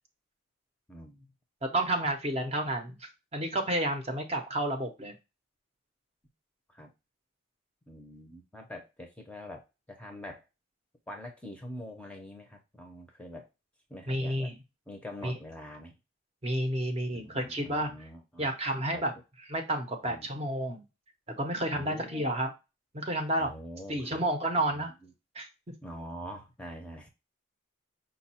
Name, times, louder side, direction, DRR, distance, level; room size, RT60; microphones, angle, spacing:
voice 1, 0.9-1.3 6.7-6.9 7.9-10.4 11.1-13.5 13.9-14.5 14.9-15.9 17.1-18.5 18.9-19.0 20.0-20.3 21.7-22.3 23.4-24.2 24.7-25.1 25.8-27.1, left 1 dB, 5° left, 2 dB, 0.6 m, -45 dB
voice 2, 1.6-3.0 3.3-5.1 14.1-14.5 15.2-15.3 16.4-17.9 18.4-19.1 19.5-20.8 21.4-22.5 22.9-23.5 23.9-24.9 25.3-25.5, right 1 dB, 30° right, 4 dB, 0.7 m, -30 dB
5.3 x 2.3 x 4.2 m, 0.26 s
head